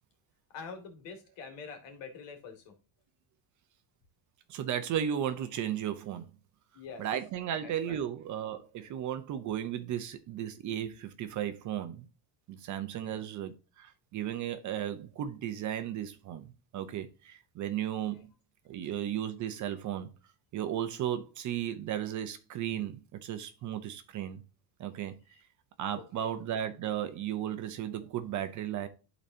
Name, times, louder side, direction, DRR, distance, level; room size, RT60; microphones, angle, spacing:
voice 1, 0.5-2.7 6.7-7.0 7.6-8.0 13.0-13.2 18.1-18.3 26.0-26.4, left 5 dB, 65° left, 2.5 m, -46 dB
voice 2, 4.5-6.3 7.0-12.1 12.5-18.3 18.7-20.1 20.5-24.4 24.8-25.2 25.8-28.9, right 10 dB, 40° right, 0.7 m, -35 dB
12.0 x 4.1 x 2.8 m
cardioid pair, 170°, 46 cm